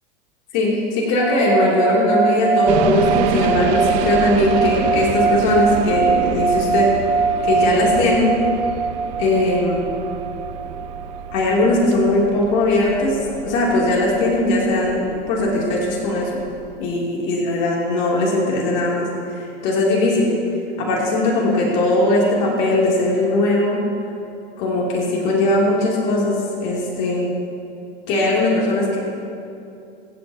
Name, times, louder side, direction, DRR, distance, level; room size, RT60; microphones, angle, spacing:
voice 1, 0.5-6.9 7.4-8.4 9.2-9.8 11.3-16.3 16.8-20.3 20.8-23.8 24.6-27.3 28.1-29.0, left 2 dB, 55° left, -4 dB, 3.3 m, -19 dB
sound 1, 1.2-12.5, right 5 dB, 15° right, 2.4 m, -22 dB
sound 2, 2.7-16.8, right 7 dB, 50° right, 1.1 m, -29 dB
25.0 x 8.4 x 3.0 m, 2.7 s
supercardioid pair, 110°, 31 cm